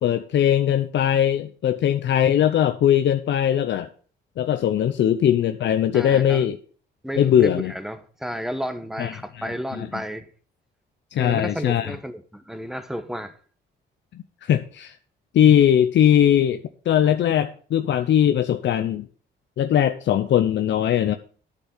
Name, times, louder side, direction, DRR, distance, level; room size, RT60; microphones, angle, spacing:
voice 1, 0.0-3.9 4.4-6.6 7.2-7.7 9.0-9.1 9.7-9.9 11.1-11.9 14.4-15.0 15.3-16.6 16.9-19.1 19.6-21.1, left 10 dB, 65° left, 0.8 m, -20 dB
voice 2, 5.9-6.5 7.0-10.3 11.2-13.3, equal, ahead, 1.4 m, -32 dB
10.0 x 6.8 x 5.6 m
cardioid pair, 90°, 20 cm